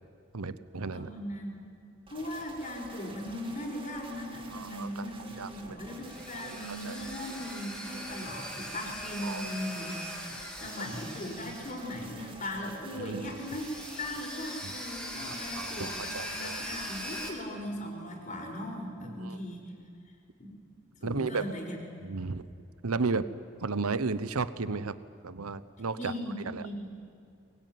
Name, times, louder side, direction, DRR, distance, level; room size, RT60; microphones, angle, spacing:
voice 1, 0.3-1.1 4.5-5.1 5.4-5.8 6.4-7.0 9.2-9.4 12.9-13.3 14.6-14.7 15.2-16.8 19.2-19.4 21.0-21.4 22.0-22.4 22.8-23.2 23.6-24.9 25.2-26.1 26.5-26.6, right 4 dB, 85° right, 14 dB, 0.9 m, -34 dB
voice 2, 0.9-1.7 2.1-13.7 14.0-19.6 20.4-20.5 21.0-21.8 26.0-26.9, left 1 dB, 35° left, 1 dB, 4.8 m, -38 dB
sound 1, 2.1-14.2, right 2 dB, 25° right, 2.6 m, -49 dB
sound 2, 5.9-12.3 12.5-12.6 13.2-17.3, equal, 5° left, 3.2 m, -41 dB
22.5 x 22.5 x 9.3 m, 2.5 s
head